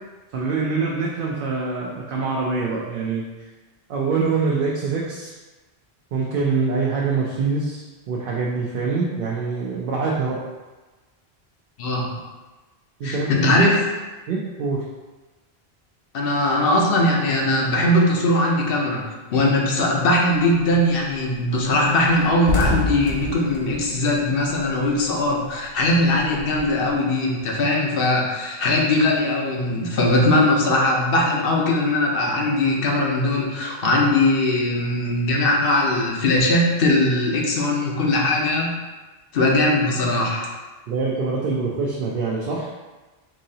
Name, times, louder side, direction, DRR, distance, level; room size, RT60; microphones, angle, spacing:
voice 1, 0.3-3.5 3.9-5.3 6.1-10.4 13.0-13.3 14.3-14.8 40.9-42.7, right 4 dB, 65° right, -4 dB, 0.7 m, -24 dB
voice 2, 11.8-12.2 13.0-13.8 16.1-19.0 19.3-38.7 39.3-40.5, left 1 dB, 65° left, -1 dB, 0.9 m, -20 dB
sound 1, 20.4-20.7 21.1-21.2 21.5-21.6 21.9-24.9 25.2-26.9, left 2 dB, 45° left, 0.5 m, -27 dB
3.9 x 2.8 x 2.7 m, 1.2 s
omnidirectional pair, 1.0 m